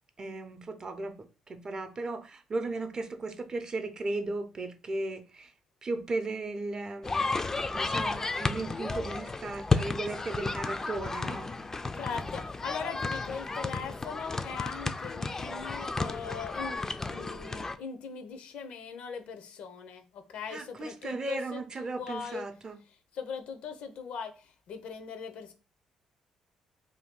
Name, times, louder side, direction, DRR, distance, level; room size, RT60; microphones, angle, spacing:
voice 1, 0.2-5.5 5.8-7.3 7.7-11.5 20.5-22.8, right 2 dB, 35° right, 0.5 m, -36 dB
sound 1, 7.0-17.7, left 3 dB, 25° left, 0.3 m, -33 dB
voice 2, 11.9-16.8 17.1-22.4 23.1-25.5, left 6 dB, 75° left, 0.6 m, -40 dB
2.6 x 2.3 x 3.6 m
supercardioid pair, 70°, 2 cm